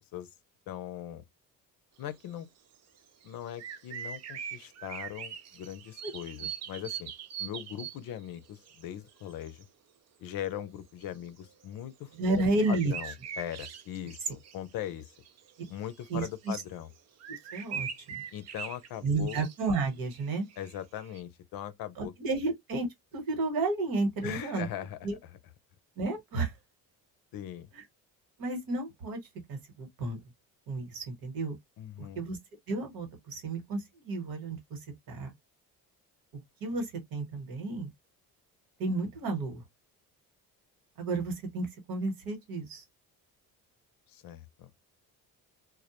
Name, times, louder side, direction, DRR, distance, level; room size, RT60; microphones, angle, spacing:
voice 1, 0.7-1.2 2.0-2.5 3.2-7.1 7.4-9.7 10.2-12.1 12.7-15.1 15.7-16.9 18.3-19.4 20.6-22.1 24.2-25.4 27.3-27.7 31.8-32.3 44.1-44.7, left 11 dB, 70° left, 0.6 m, -40 dB
sound 1, 2.7-2.8 3.2-8.3 8.7-8.8 9.1-9.6 11.0-11.1 12.3-16.3 16.7-16.8 17.2-21.2, right 8 dB, 45° right, 0.5 m, -42 dB
voice 2, 12.2-12.9 16.1-16.5 17.3-18.2 19.0-20.5 22.0-22.9 23.1-24.7 25.0-25.2 26.0-26.5 28.4-29.2 29.5-30.2 30.7-31.5 32.1-32.4 32.7-34.8 35.1-35.3 36.6-37.9 38.8-39.6 41.0-42.8, right 3 dB, 70° right, 1.2 m, -32 dB
2.2 x 2.1 x 2.8 m
cardioid pair, 95°, 37 cm